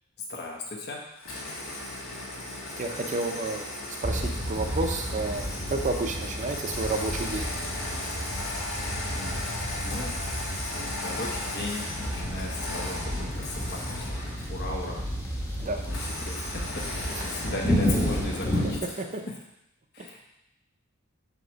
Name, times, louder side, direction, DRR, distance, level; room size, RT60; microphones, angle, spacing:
voice 1, 0.3-1.0 9.1-9.4 9.8-10.1 11.0-14.1 14.5-15.0 15.8-18.8 19.9-20.3, left 2 dB, 50° left, -1 dB, 1.0 m, -37 dB
Engine starting, 1.2-14.6 15.9-19.1, left 2 dB, 65° left, 1.9 m, -36 dB
voice 2, 2.8-3.7 4.0-7.5 15.6-15.8 19.0-19.2 20.0-20.1, right 3 dB, 35° right, 4 dB, 0.6 m, -31 dB
sound 1, 4.0-18.8, equal, 10° left, 1.0 m, -32 dB
7.8 x 3.0 x 6.2 m, 0.83 s
head